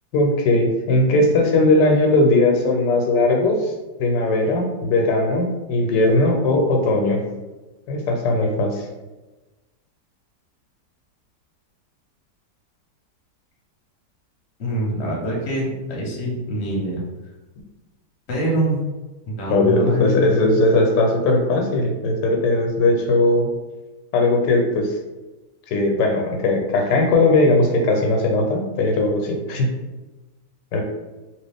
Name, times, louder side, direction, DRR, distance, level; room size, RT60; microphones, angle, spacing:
voice 1, 0.1-3.7 4.0-7.2 7.9-8.8 19.5-23.5 24.1-24.9 25.7-29.7 30.7-30.8, left 2 dB, 85° left, 2 dB, 1.3 m, -18 dB
voice 2, 14.6-17.0 18.3-18.8 19.3-20.4, right 1 dB, 45° left, -3 dB, 1.0 m, -24 dB
2.9 x 2.8 x 3.4 m, 1.1 s
omnidirectional pair, 1.8 m